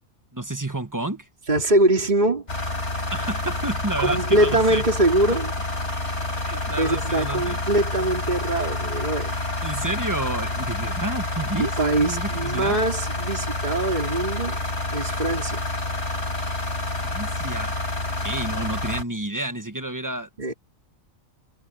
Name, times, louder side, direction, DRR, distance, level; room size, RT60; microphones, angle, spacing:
voice 1, 0.3-1.3 3.1-4.8 6.4-7.6 9.6-12.8 17.0-17.8 18.2-20.5, right 1 dB, 15° right, 1.2 m, -30 dB
voice 2, 1.5-2.5 4.0-5.5 6.8-9.4 11.6-14.6 14.9-15.6 20.4-20.5, right 1 dB, 30° right, 3.2 m, -23 dB
sound 1, 2.5-19.0, left 1 dB, 55° left, 5.0 m, -28 dB
omnidirectional pair, 1.5 m